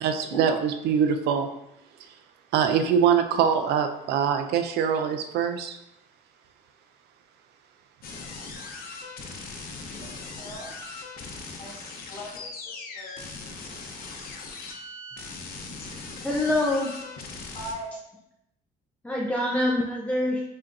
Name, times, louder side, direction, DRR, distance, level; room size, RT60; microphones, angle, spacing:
voice 1, 0.0-1.5 2.5-5.8, right 7 dB, 75° right, 7 dB, 0.5 m, -23 dB
sound 1, 8.0-17.7, left 3 dB, 60° left, 0.7 m, -39 dB
voice 2, 9.9-10.7 11.6-13.2 15.9-16.3 17.5-17.9, equal, 35° left, -3 dB, 1.4 m, -41 dB
voice 3, 16.2-16.9 19.0-20.4, left 1 dB, 10° left, -3 dB, 0.5 m, -25 dB
4.3 x 3.6 x 2.5 m, 0.84 s
cardioid pair, 110°, 17 cm